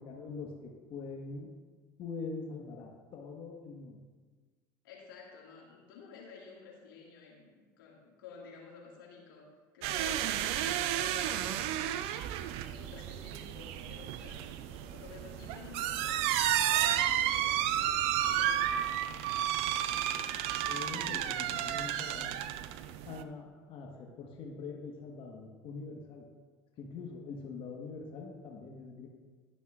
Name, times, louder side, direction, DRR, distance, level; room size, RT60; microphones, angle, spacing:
voice 1, 0.0-1.5 2.0-4.0 19.6-22.4 22.8-26.3 26.8-29.1, left 4 dB, 50° left, 0 dB, 1.4 m, -44 dB
voice 2, 4.8-9.5 9.7-12.0 12.7-16.3 16.7-19.0, left 5 dB, 80° left, -2 dB, 2.1 m, -52 dB
sound 1, 9.8-23.2, right 11 dB, 60° right, 0.5 m, -32 dB
20.0 x 6.9 x 2.5 m, 1.4 s
hypercardioid pair, 70°, 11 cm